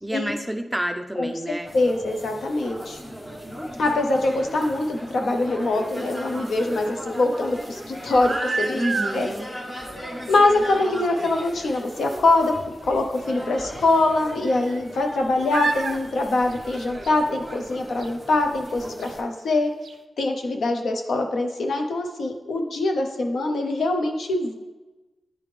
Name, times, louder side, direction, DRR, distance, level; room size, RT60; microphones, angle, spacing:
voice 1, 0.0-1.7 8.7-9.5, right 1 dB, 5° right, 5 dB, 0.4 m, -29 dB
voice 2, 1.2-3.0 3.8-8.8 9.1-9.3 10.3-12.5 12.8-19.7 20.2-24.5, left 2 dB, 85° left, 4 dB, 0.8 m, -23 dB
sound 1, 1.6-19.2, equal, 25° left, 1.4 m, -37 dB
sound 2, 6.1-7.0 8.0-9.2 10.2-10.3 10.6-10.7 11.2-11.3 11.5-11.6 13.3-13.4 14.3-15.1 15.5-16.0 16.4-17.3 18.0-18.1 19.0-19.1 19.5-19.6 19.8-19.9, right 4 dB, 65° right, 0.4 m, -30 dB
9.8 x 3.5 x 3.3 m, 1.1 s
wide cardioid pair, 125°, 0 cm